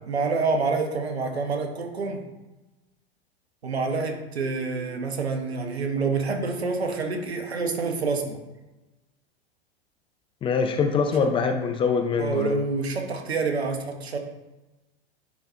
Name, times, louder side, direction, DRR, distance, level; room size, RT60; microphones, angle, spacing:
voice 1, 0.1-2.2 3.6-8.4 11.2-11.4 12.2-14.2, right 4 dB, 80° right, 4 dB, 1.1 m, -27 dB
voice 2, 10.4-12.6, left 5 dB, 15° left, 6 dB, 0.4 m, -24 dB
10.5 x 4.0 x 2.8 m, 1.1 s
figure-of-eight pair, 100°, 31 cm